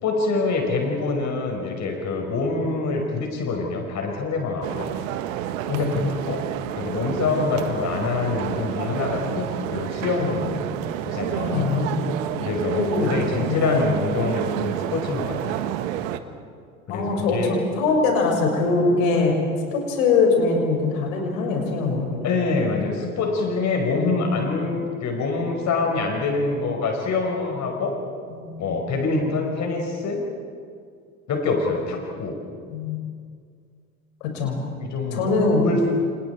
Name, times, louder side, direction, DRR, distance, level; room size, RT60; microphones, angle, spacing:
voice 1, 0.0-4.9 5.7-6.5 6.8-10.6 11.1-11.7 12.4-15.4 16.9-17.5 22.2-28.0 28.6-30.2 31.3-32.4 34.8-35.4 35.6-35.9, left 3 dB, 40° left, 2 dB, 5.2 m, -25 dB
sound 1, 4.6-16.2, right 11 dB, 60° right, 1.6 m, -29 dB
voice 2, 10.2-10.7 11.3-12.1 12.7-13.8 16.9-19.4 19.7-22.3 28.3-28.8 32.7-33.0 34.3-34.6 35.1-35.7, left 3 dB, 65° left, 1 dB, 6.0 m, -23 dB
30.0 x 30.0 x 4.7 m, 2.2 s
figure-of-eight pair, 70°, 43 cm